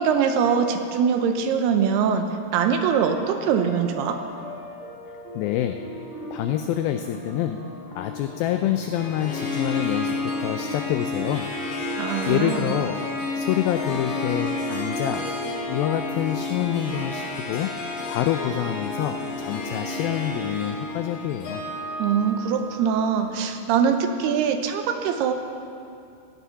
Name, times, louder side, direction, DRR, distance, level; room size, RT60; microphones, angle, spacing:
voice 1, 0.0-4.2 12.0-12.7 22.0-25.3, right 7 dB, 80° right, 6 dB, 2.8 m, -23 dB
sound 1, 2.6-14.5, left 1 dB, 50° right, 4.8 m, -39 dB
voice 2, 5.4-5.9 6.3-11.5 12.3-13.0 13.4-17.7 18.1-21.6, left 11 dB, 90° left, 8 dB, 2.1 m, -27 dB
Harp, 8.9-23.4, left 2 dB, 60° left, 3.7 m, -31 dB
15.5 x 11.0 x 5.8 m, 2.5 s
omnidirectional pair, 4.7 m